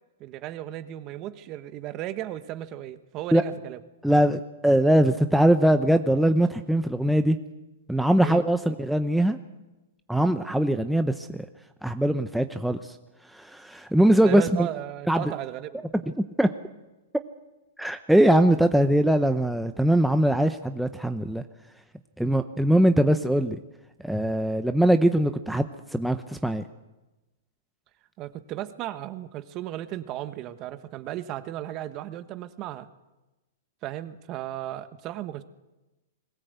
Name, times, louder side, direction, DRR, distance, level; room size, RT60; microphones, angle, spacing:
voice 1, 0.2-3.8 8.2-8.4 14.2-15.9 28.2-32.9 33.8-35.4, right 13 dB, 35° right, 12 dB, 1.3 m, -35 dB
voice 2, 4.0-7.4 7.9-9.4 10.1-11.5 11.8-12.9 13.3-14.7 15.1-15.3 16.2-16.5 17.8-21.4 22.2-23.6 24.0-25.7 25.9-26.6, right 1 dB, ahead, 7 dB, 0.8 m, -21 dB
21.5 x 17.0 x 8.2 m, 1.1 s
hypercardioid pair, 145°, 0 cm